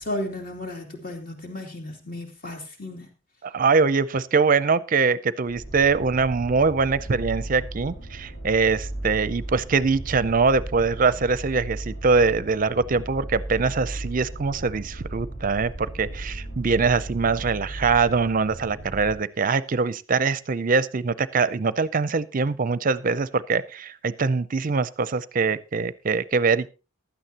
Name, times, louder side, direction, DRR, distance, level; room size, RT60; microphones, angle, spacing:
voice 1, 0.0-3.1, left 1 dB, 45° left, 3 dB, 2.9 m, -34 dB
voice 2, 3.4-26.7, right 4 dB, 40° right, 17 dB, 0.5 m, -23 dB
sound 1, 5.5-19.2, right 1 dB, 75° left, 3.8 m, -36 dB
15.5 x 11.5 x 2.9 m, 0.31 s
head